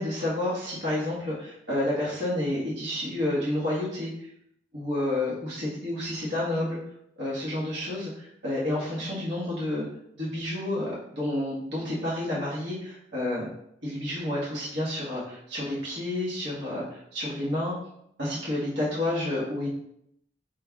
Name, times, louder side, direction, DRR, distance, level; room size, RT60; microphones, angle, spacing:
voice 1, 0.0-4.1 4.7-6.8 7.2-9.8 10.2-13.5 13.8-17.7 18.2-19.7, left 1 dB, 65° right, -7 dB, 1.5 m, -30 dB
5.2 x 4.1 x 2.3 m, 0.75 s
head